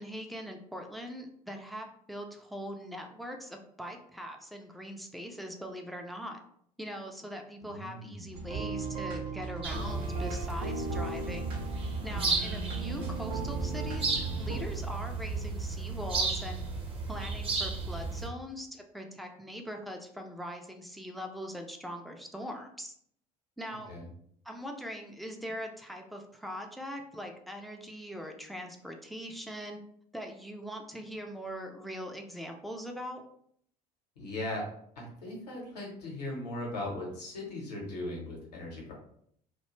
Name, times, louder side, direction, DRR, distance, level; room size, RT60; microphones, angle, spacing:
voice 1, 0.0-6.4 6.8-11.5 12.0-16.6 17.1-22.9 23.6-23.9 24.4-29.8 30.1-33.2, equal, ahead, 3 dB, 0.4 m, -41 dB
voice 2, 7.6-8.5 23.9-24.1 34.2-34.6 35.0-38.9, left 1 dB, 80° left, -2 dB, 0.9 m, -38 dB
sound 1, 8.3-14.6, right 3 dB, 65° right, 0.7 m, -37 dB
sound 2, 9.6-18.3, right 3 dB, 25° right, 0.7 m, -34 dB
2.3 x 2.2 x 2.9 m, 0.67 s
figure-of-eight pair, 60°, 21 cm